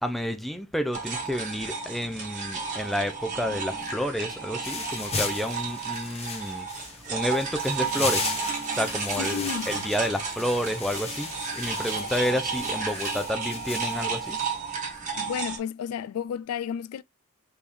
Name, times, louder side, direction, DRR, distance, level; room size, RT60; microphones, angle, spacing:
voice 1, 0.0-6.7 7.1-8.4 8.7-14.4, equal, ahead, 0.5 m, -30 dB
sound 1, 0.9-15.6, right 5 dB, 35° right, 1.2 m, -32 dB
sound 2, 4.6-14.5, left 4 dB, 30° left, 0.9 m, -36 dB
voice 2, 9.2-9.9 12.0-12.1 15.2-17.0, left 8 dB, 85° left, 0.3 m, -33 dB
4.2 x 3.5 x 3.5 m
head